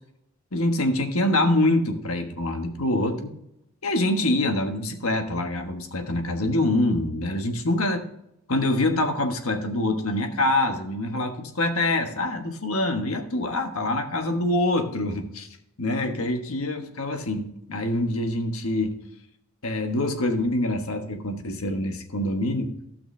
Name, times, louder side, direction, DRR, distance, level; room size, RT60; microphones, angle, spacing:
voice 1, 0.5-3.3 3.8-8.0 8.5-15.5 15.8-19.0 19.6-22.7, left 1 dB, 90° left, 5 dB, 1.3 m, -25 dB
15.5 x 5.9 x 3.3 m, 0.81 s
head